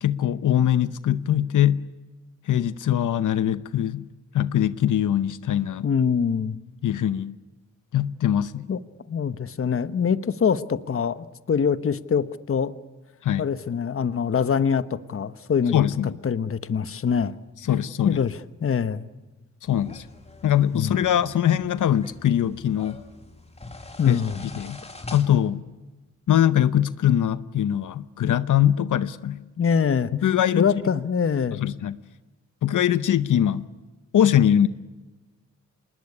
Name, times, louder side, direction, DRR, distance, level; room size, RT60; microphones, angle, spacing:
voice 1, 0.0-1.8 2.5-4.1 4.3-5.9 6.8-7.4 7.9-8.7 13.2-13.4 15.7-16.2 17.6-18.2 19.6-20.0 20.4-23.0 24.1-24.2 24.6-24.8 25.1-25.6 26.3-29.4 30.1-30.7 31.5-32.0 32.6-33.7 34.1-34.7, left 10 dB, 90° left, 0.8 m, -22 dB
voice 2, 5.8-6.6 8.7-8.8 9.1-12.7 13.4-15.8 16.2-17.3 18.0-19.0 20.7-21.0 24.0-24.4 29.6-30.1 30.5-31.6, left 6 dB, 45° left, 1.1 m, -24 dB
sound 1, 19.6-25.3, left 2 dB, 20° left, 2.9 m, -43 dB
27.0 x 20.5 x 9.8 m
wide cardioid pair, 115°, 30 cm